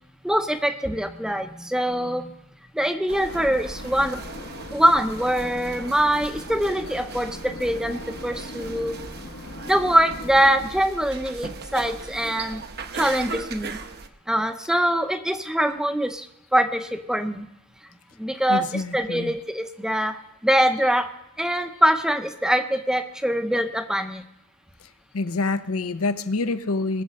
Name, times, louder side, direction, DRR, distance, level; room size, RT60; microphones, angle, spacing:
voice 1, 0.2-2.3 2.7-4.2 4.7-9.0 9.6-12.6 12.9-13.8 14.3-16.3 16.5-17.5 18.2-21.1 21.4-24.2, equal, 5° right, 8 dB, 0.7 m, -23 dB
sound 1, 3.1-14.1, right 4 dB, 50° right, 0.9 m, -38 dB
sound 2, 3.3-10.8, left 2 dB, 60° left, 1.1 m, -40 dB
voice 2, 18.5-19.3 25.1-27.0, left 3 dB, 75° left, 11 dB, 0.7 m, -26 dB
20.5 x 7.6 x 5.4 m, 0.84 s
head